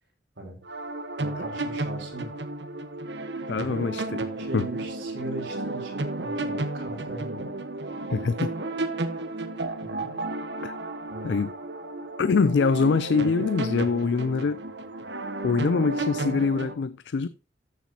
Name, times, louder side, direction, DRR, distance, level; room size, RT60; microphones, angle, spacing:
sound 1, 0.6-16.8, right 2 dB, 70° right, 1.1 m, -33 dB
voice 1, 1.2-2.3 3.5-4.0 4.3-7.5 9.8-10.2 11.1-11.4, right 2 dB, 85° right, 3.9 m, -38 dB
voice 2, 3.5-4.0 4.5-4.7 8.1-8.5 10.6-10.7 11.2-11.5 12.2-14.6 15.4-17.3, left 4 dB, 70° left, 0.4 m, -24 dB
13.5 x 7.2 x 2.8 m
head